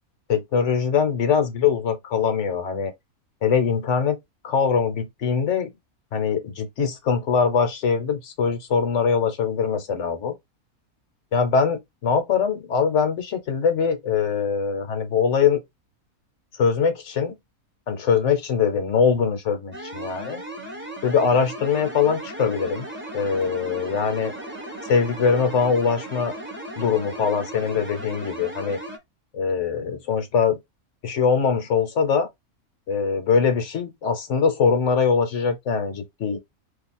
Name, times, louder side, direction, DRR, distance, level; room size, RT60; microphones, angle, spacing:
voice 1, 0.3-2.9 3.4-4.2 4.4-5.7 6.1-10.3 11.3-15.6 16.6-17.3 17.9-20.4 21.0-22.9 23.1-24.3 24.8-26.4 26.8-28.8 29.3-30.6 31.0-32.3 32.9-36.4, left 6 dB, 60° left, 1.1 m, -22 dB
sound 1, 19.7-29.0, right 1 dB, 10° right, 0.8 m, -36 dB
2.7 x 2.4 x 4.2 m
omnidirectional pair, 1.5 m